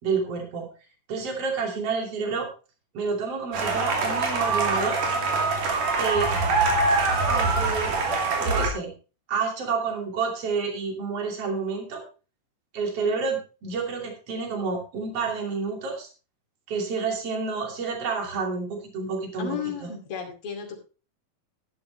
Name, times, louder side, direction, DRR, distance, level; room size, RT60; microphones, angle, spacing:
voice 1, 0.0-0.7 1.1-2.5 2.9-5.0 6.0-6.3 7.3-7.9 8.4-8.9 9.3-12.0 12.7-16.1 16.7-19.9, right 4 dB, 50° right, 2 dB, 3.6 m, -29 dB
sound 1, 3.5-8.7, right 3 dB, 80° right, 4.1 m, -24 dB
voice 2, 6.3-6.6 19.4-20.8, left 7 dB, 45° left, 1 dB, 3.2 m, -34 dB
12.5 x 11.0 x 3.2 m, 0.33 s
omnidirectional pair, 3.6 m